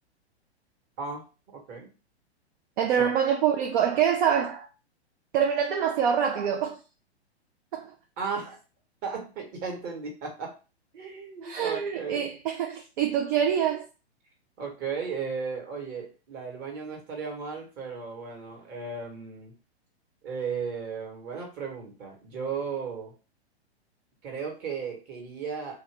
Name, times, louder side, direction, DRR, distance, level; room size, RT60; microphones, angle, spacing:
voice 1, 1.5-1.9 3.0-3.1 8.2-8.6 9.0-10.5 10.9-12.3 14.6-19.5 20.2-23.1 24.2-25.8, right 5 dB, 30° right, 1.3 m, -35 dB
voice 2, 2.8-4.7 5.3-6.8 7.7-7.9 11.4-13.9, right 8 dB, 50° right, 0.5 m, -25 dB
2.9 x 2.5 x 3.3 m
hypercardioid pair, 120°, 33 cm